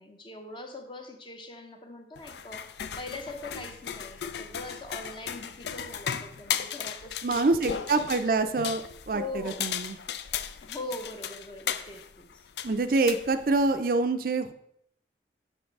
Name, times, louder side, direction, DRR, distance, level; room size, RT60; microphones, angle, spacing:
voice 1, 0.0-7.8 9.1-9.7 10.6-12.5, left 2 dB, 25° left, 5 dB, 0.8 m, -42 dB
sound 1, 2.2-13.8, left 8 dB, 65° left, 0.4 m, -36 dB
voice 2, 7.2-8.8 9.1-10.0 12.6-14.5, right 3 dB, 50° right, 9 dB, 0.4 m, -26 dB
6.4 x 6.1 x 4.6 m, 0.72 s
head